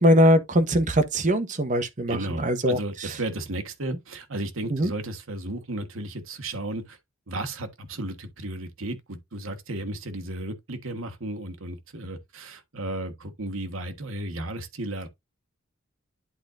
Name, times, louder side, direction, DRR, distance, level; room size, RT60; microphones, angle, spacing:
voice 1, 0.0-2.8 4.7-4.9, equal, 40° right, 1.1 m, -21 dB
voice 2, 2.1-7.0 7.3-15.1, right 1 dB, 75° right, 1.4 m, -34 dB
11.5 x 3.8 x 2.5 m
head